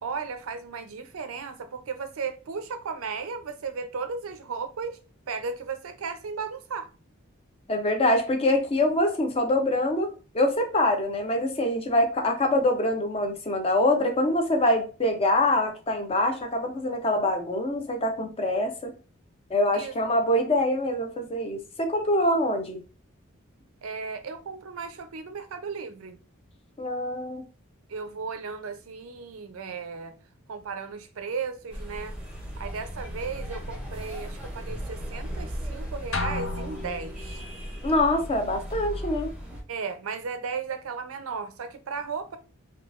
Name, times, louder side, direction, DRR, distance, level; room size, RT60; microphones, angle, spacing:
voice 1, 0.0-5.0 5.3-6.9 19.7-19.9 23.8-26.2 27.9-30.1 30.5-32.1 32.6-37.4 39.7-42.4, right 5 dB, 80° right, 0.5 m, -35 dB
voice 2, 7.7-10.1 10.3-18.9 19.5-22.8 26.8-27.4 37.8-39.3, left 1 dB, 30° left, 0.6 m, -24 dB
sound 1, 31.7-39.6, equal, 5° right, 0.7 m, -36 dB
sound 2, 36.1-37.6, left 3 dB, 75° left, 0.6 m, -33 dB
3.7 x 2.3 x 2.4 m
head